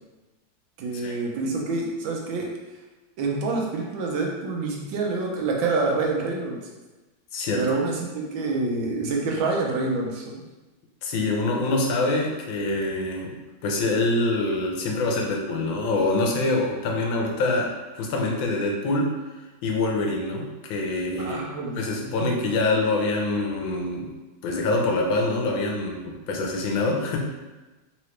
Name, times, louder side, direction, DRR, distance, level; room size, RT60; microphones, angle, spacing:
voice 1, 0.8-2.5 3.2-6.6 7.6-10.2 21.2-22.8, right 3 dB, 85° right, 0 dB, 1.4 m, -27 dB
voice 2, 7.3-7.7 11.0-13.3 13.6-17.7 17.9-19.1 19.6-21.4 21.7-24.1 24.4-27.2, left 2 dB, 90° left, 0 dB, 1.5 m, -25 dB
3.8 x 3.0 x 3.1 m, 1.2 s
omnidirectional pair, 2.1 m